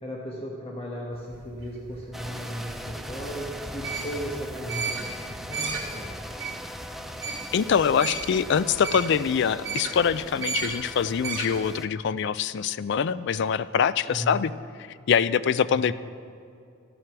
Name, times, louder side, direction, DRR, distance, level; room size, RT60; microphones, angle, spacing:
voice 1, 0.0-5.2 5.5-6.1 14.1-14.4 15.8-15.9, equal, 30° left, -3 dB, 1.3 m, -36 dB
sound 1, 1.1-11.7, right 5 dB, 85° right, 2.3 m, -35 dB
sound 2, 2.1-11.9, equal, ahead, 0.4 m, -40 dB
voice 2, 7.5-14.5 15.1-15.9, left 7 dB, 60° left, 16 dB, 0.4 m, -24 dB
14.0 x 7.7 x 6.0 m, 2.5 s
head